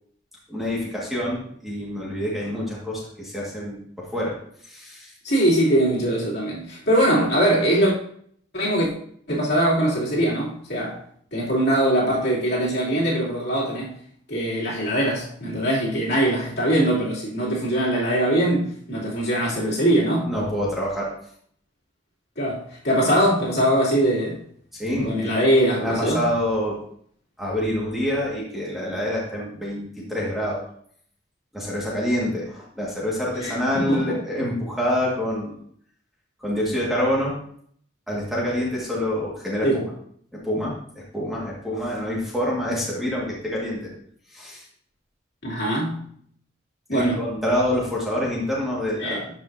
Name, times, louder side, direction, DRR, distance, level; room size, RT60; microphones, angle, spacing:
voice 1, 0.5-4.3 4.6-5.1 20.3-21.1 24.8-25.3 25.8-26.8 27.4-30.6 31.5-35.6 36.4-37.3 38.1-39.8 40.4-43.8 44.3-44.6 46.9-49.2, left 1 dB, ahead, 1.7 m, -26 dB
voice 2, 5.2-7.9 8.5-8.9 9.3-11.0 11.3-13.9 14.3-20.3 22.4-24.4 25.0-26.3 33.4-34.2 39.6-39.8 45.4-46.0 46.9-47.2 49.0-49.2, right 1 dB, 55° left, 2.8 m, -22 dB
12.5 x 5.4 x 2.7 m
head